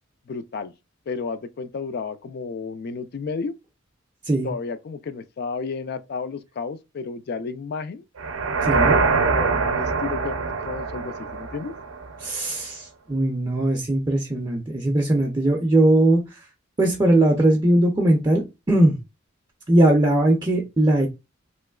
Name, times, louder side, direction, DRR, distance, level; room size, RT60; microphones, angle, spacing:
voice 1, 0.3-0.7 1.1-3.5 4.4-8.0 8.7-11.7, left 4 dB, 50° left, 0.3 m, -32 dB
sound 1, 8.2-12.3, right 4 dB, 70° right, 0.5 m, -23 dB
voice 2, 8.6-9.0 12.2-16.4 16.8-19.0 19.7-21.1, right 1 dB, 20° right, 0.4 m, -20 dB
3.1 x 2.9 x 2.2 m
head